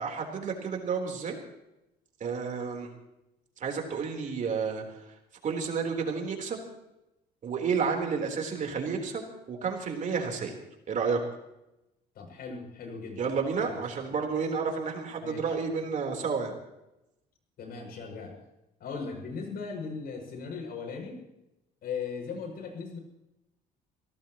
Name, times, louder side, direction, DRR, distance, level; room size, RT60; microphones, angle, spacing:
voice 1, 0.0-1.4 2.2-2.9 3.6-4.8 5.4-6.6 7.4-10.6 10.9-11.2 13.2-16.6, right 5 dB, 50° right, 2 dB, 3.9 m, -31 dB
voice 2, 12.1-13.3 13.6-13.7 14.1-14.2 15.2-15.5 17.6-18.3 18.8-21.2 21.8-23.0, left 5 dB, 65° left, 2 dB, 7.3 m, -38 dB
23.5 x 18.0 x 3.1 m, 0.91 s
cardioid pair, 110°, 17 cm